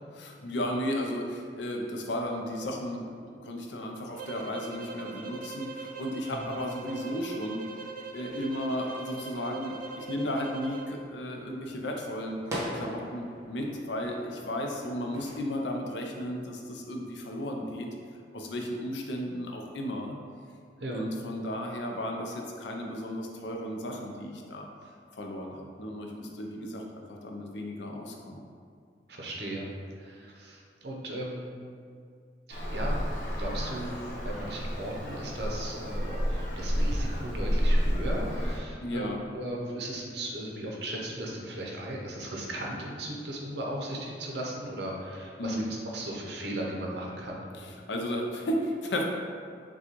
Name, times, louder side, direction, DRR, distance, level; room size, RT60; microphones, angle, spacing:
voice 1, 0.1-7.8 8.1-12.4 12.7-17.9 18.3-20.2 20.9-24.7 25.1-28.4 38.8-39.2 45.4-45.7 47.5-49.0, left 1 dB, 85° left, 1 dB, 0.6 m, -34 dB
sound 1, 4.1-11.0, right 4 dB, 50° right, 0.3 m, -41 dB
sound 2, 8.2-15.4, equal, 15° right, 0.9 m, -43 dB
voice 2, 29.1-29.6 30.0-31.5 32.5-32.9 33.3-33.9 34.2-45.6 45.9-47.4, right 1 dB, 65° right, -2 dB, 0.8 m, -37 dB
Traffic noise roadway noise, 32.5-38.6, equal, 45° left, 0.9 m, -30 dB
6.1 x 2.3 x 3.0 m, 2.2 s
head